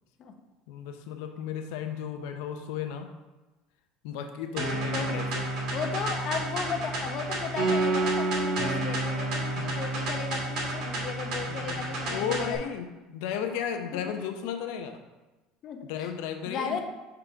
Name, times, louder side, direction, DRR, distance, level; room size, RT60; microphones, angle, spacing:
voice 1, 0.7-3.1 4.0-5.5 9.5-9.7 11.5-15.0 15.9-16.8, left 8 dB, 80° left, 6 dB, 0.7 m, -34 dB
sound 1, 4.6-12.6, right 2 dB, 60° right, 2.0 m, -30 dB
voice 2, 4.9-5.3 5.7-12.7 13.9-14.0 15.6-16.1 16.5-16.8, left 6 dB, 40° left, 5 dB, 0.7 m, -35 dB
5.8 x 3.8 x 4.6 m, 1.1 s
cardioid pair, 145°, 0 cm